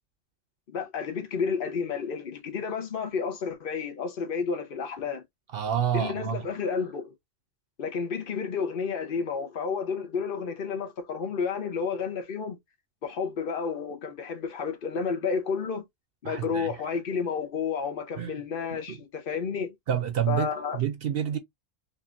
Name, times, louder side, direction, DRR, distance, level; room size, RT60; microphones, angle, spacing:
voice 1, 0.7-5.2 5.9-7.1 7.8-12.6 13.0-15.8 16.2-19.7 20.3-20.8, left 6 dB, 50° left, 1.1 m, -31 dB
voice 2, 5.5-6.5 16.2-16.8 18.2-18.4 18.7-19.0 19.9-21.4, right 9 dB, 60° right, 0.8 m, -29 dB
5.3 x 2.5 x 2.5 m
omnidirectional pair, 1.2 m